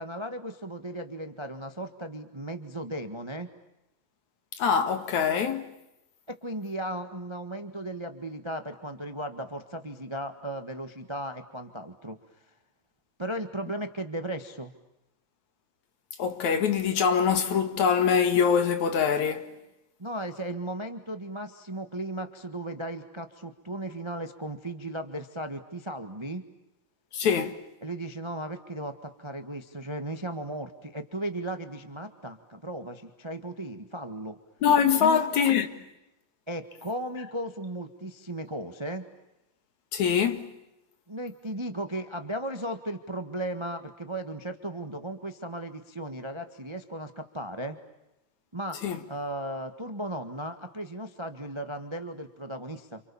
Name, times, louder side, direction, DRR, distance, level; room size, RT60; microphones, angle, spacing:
voice 1, 0.0-3.5 6.3-12.2 13.2-14.7 20.0-26.4 27.8-34.4 35.0-35.2 36.5-39.0 41.1-47.8 48.5-48.8 49.1-53.0, right 1 dB, 45° right, 0.3 m, -36 dB
voice 2, 4.6-5.7 16.2-19.5 27.1-27.5 34.6-35.7 39.9-40.5 48.8-49.0, left 7 dB, 60° left, 3.0 m, -24 dB
29.5 x 28.5 x 7.1 m
omnidirectional pair, 3.8 m